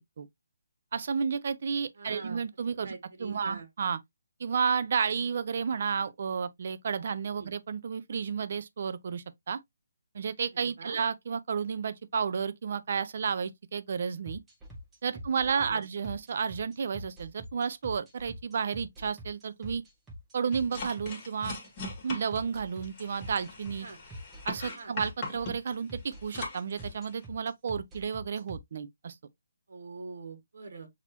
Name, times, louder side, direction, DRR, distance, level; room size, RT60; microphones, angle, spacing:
voice 1, 0.9-2.9 3.2-4.0 4.4-9.6 10.1-14.4 15.0-19.8 20.3-21.5 22.0-23.9 24.4-29.1, right 6 dB, 50° right, 0.6 m, -32 dB
voice 2, 2.0-2.4 2.8-3.7 7.3-7.5 10.6-11.0 15.4-15.8 23.8-24.0 24.8-24.9 29.7-30.9, right 3 dB, 70° right, 1.5 m, -43 dB
sound 1, 14.3-28.6, equal, 10° right, 1.0 m, -44 dB
sound 2, 20.5-27.3, left 3 dB, 25° left, 1.6 m, -41 dB
6.1 x 2.9 x 2.8 m
hypercardioid pair, 165°, 0 cm